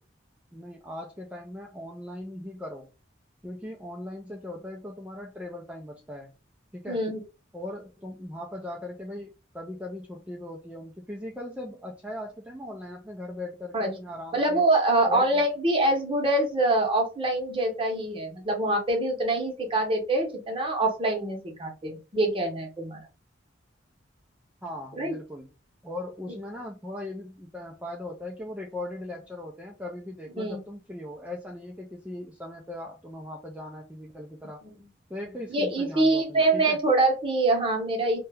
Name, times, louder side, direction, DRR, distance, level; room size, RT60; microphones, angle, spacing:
voice 1, 0.5-2.9 3.4-6.3 6.7-7.0 7.5-14.6 15.1-15.5 24.6-25.5 25.8-34.6 35.1-36.8, left 1 dB, 5° right, -1 dB, 0.4 m, -39 dB
voice 2, 6.9-7.2 13.7-13.9 14.3-23.1 25.0-25.1 30.4-30.6 34.6-34.7 35.5-38.3, right 2 dB, 30° right, 2 dB, 0.8 m, -25 dB
2.8 x 2.2 x 3.4 m, 0.31 s
head